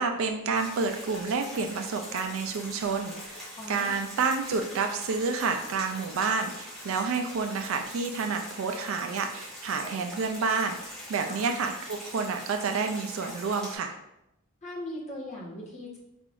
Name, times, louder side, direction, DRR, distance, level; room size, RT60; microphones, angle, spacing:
voice 1, 0.0-13.9, right 4 dB, 65° right, 5 dB, 0.4 m, -29 dB
sound 1, 0.5-13.8, left 1 dB, 5° left, 1.2 m, -43 dB
voice 2, 3.6-4.0 11.3-11.4 14.6-16.0, left 1 dB, 35° left, -5 dB, 1.2 m, -39 dB
4.5 x 3.4 x 2.5 m, 0.86 s
head